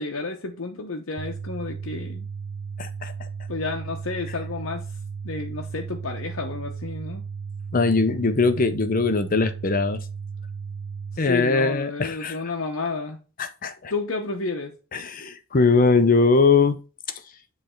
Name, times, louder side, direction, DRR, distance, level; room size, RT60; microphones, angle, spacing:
voice 1, 0.0-2.3 3.5-4.8 5.2-7.2 11.1-13.2 13.9-14.7, left 3 dB, 70° left, 0.8 m, -31 dB
sound 1, 1.2-11.2, right 5 dB, 75° right, 0.7 m, -35 dB
voice 2, 2.8-3.1 7.7-10.0 11.2-12.4 13.4-13.9 14.9-16.8, left 4 dB, 40° left, 0.6 m, -21 dB
7.8 x 3.3 x 4.3 m
head